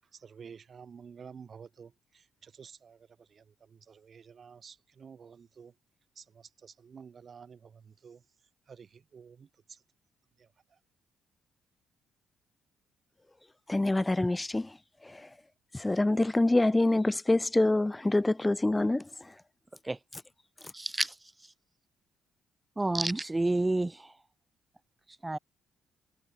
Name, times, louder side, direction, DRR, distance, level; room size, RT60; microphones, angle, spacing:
voice 1, 0.0-5.8 6.2-8.3 8.7-9.8 10.4-10.8, right 6 dB, 45° right, 7.2 m, -51 dB
voice 2, 13.7-14.7 15.7-19.0, left 2 dB, 15° left, 0.7 m, -25 dB
voice 3, 20.7-21.1 22.8-24.1 25.2-25.4, right 2 dB, 15° right, 1.3 m, -29 dB
cardioid pair, 90°, 0 cm